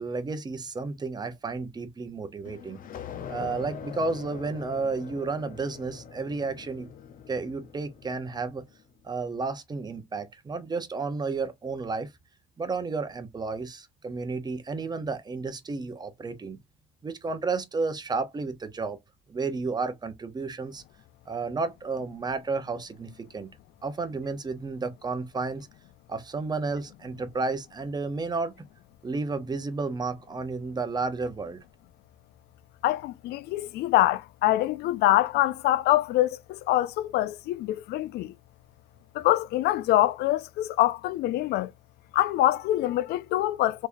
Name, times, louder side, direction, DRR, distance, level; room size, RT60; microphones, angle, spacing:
voice 1, 0.0-2.8 3.3-6.9 7.3-8.6 9.0-12.1 12.6-16.6 17.0-19.0 19.3-20.8 21.3-23.5 23.8-25.7 26.1-28.5 29.0-31.6, right 4 dB, 25° right, 0.8 m, -32 dB
sound 1, 2.4-8.8, left 8 dB, 55° left, 0.8 m, -43 dB
voice 2, 32.8-38.3 39.1-41.7 42.1-43.9, left 15 dB, 75° left, 0.4 m, -25 dB
3.5 x 3.1 x 2.6 m
cardioid pair, 110°, 17 cm